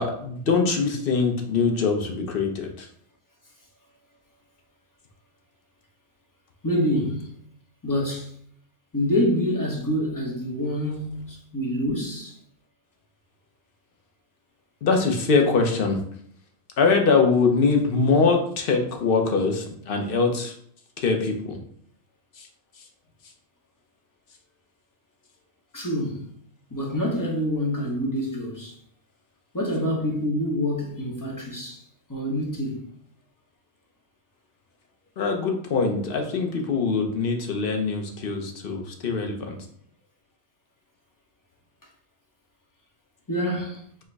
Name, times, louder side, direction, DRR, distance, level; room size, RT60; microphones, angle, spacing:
voice 1, 0.0-2.9 14.8-16.0 16.8-20.5 21.0-21.6 22.4-22.5 35.2-39.6, left 4 dB, 60° left, 0.8 m, -23 dB
voice 2, 6.6-7.3 7.8-8.3 8.9-12.3 25.7-26.2 26.7-28.7 29.5-31.8 32.1-32.8 43.3-43.8, equal, 20° left, 0.8 m, -26 dB
4.5 x 2.1 x 4.5 m
omnidirectional pair, 1.2 m